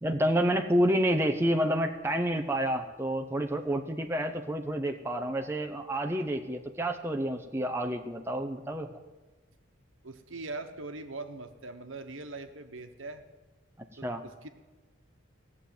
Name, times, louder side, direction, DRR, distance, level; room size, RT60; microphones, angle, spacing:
voice 1, 0.0-9.0 14.0-14.2, equal, 10° right, 4 dB, 0.7 m, -29 dB
voice 2, 10.0-13.2 14.0-14.5, right 3 dB, 75° right, 7 dB, 1.2 m, -41 dB
16.5 x 7.1 x 9.2 m, 1.3 s
head